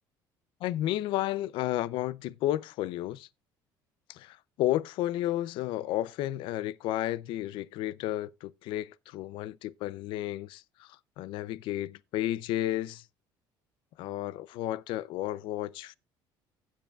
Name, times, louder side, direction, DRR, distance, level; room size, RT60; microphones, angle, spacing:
voice 1, 0.6-3.3 4.1-13.0 14.0-15.9, left 14 dB, 70° left, 0.5 m, -32 dB
16.0 x 7.4 x 2.3 m
cardioid pair, 145°, 9 cm